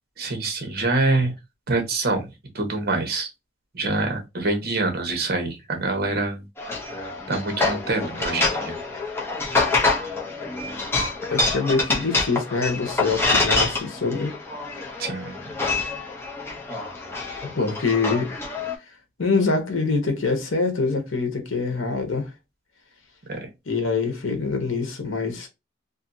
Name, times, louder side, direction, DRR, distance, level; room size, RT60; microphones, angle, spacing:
voice 1, 0.2-1.3 1.7-2.3 2.5-3.3 3.7-6.4 7.3-8.8 15.0-15.5 23.3-23.5, right 2 dB, 55° right, 1.0 m, -25 dB
sound 1, 6.6-18.8, left 3 dB, 10° left, 0.6 m, -26 dB
voice 2, 11.3-14.3 17.4-18.3 19.2-22.3 23.7-25.5, left 4 dB, 80° left, 1.0 m, -24 dB
2.6 x 2.6 x 2.5 m
head